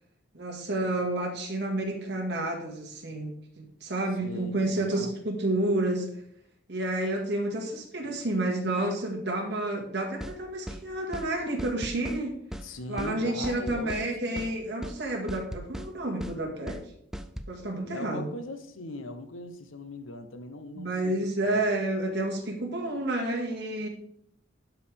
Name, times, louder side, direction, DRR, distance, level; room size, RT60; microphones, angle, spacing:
voice 1, 0.3-6.1 6.7-12.3 12.9-16.8 17.5-18.3 20.8-23.9, right 1 dB, 55° right, 0 dB, 2.0 m, -30 dB
voice 2, 4.2-5.1 12.5-14.6 17.8-21.6, left 2 dB, 85° left, 9 dB, 0.9 m, -40 dB
sound 1, 10.2-10.4 10.7-10.8 11.1-11.3 11.6-12.2 12.5-12.7 13.0-13.1 13.4-14.1 14.4-14.5 14.8-15.0 15.3-15.9 16.2-16.4 16.7-16.8 17.1-17.5, equal, ahead, 0.3 m, -38 dB
12.0 x 4.9 x 3.5 m, 0.72 s
head